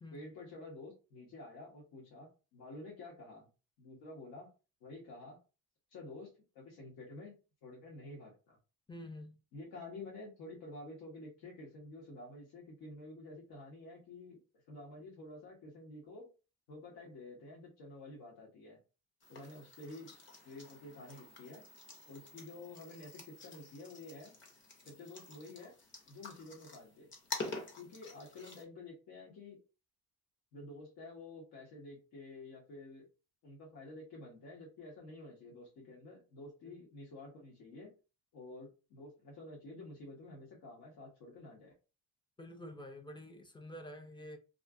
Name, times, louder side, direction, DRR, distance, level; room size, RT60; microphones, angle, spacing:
voice 1, 0.1-3.5 3.8-4.5 4.8-5.4 5.9-7.3 7.6-8.6 9.5-14.4 14.7-16.3 16.7-18.8 19.3-20.2 20.4-21.6 22.1-24.3 24.9-25.7 26.1-27.1 27.8-29.6 30.5-33.1 33.4-37.9 38.3-41.7, left 2 dB, 75° left, 1.3 m, -50 dB
voice 2, 8.9-9.4 42.4-44.4, left 1 dB, 15° left, 0.3 m, -48 dB
sound 1, 19.2-28.6, left 3 dB, 30° left, 0.8 m, -48 dB
2.5 x 2.4 x 3.5 m
cardioid pair, 145°, 37 cm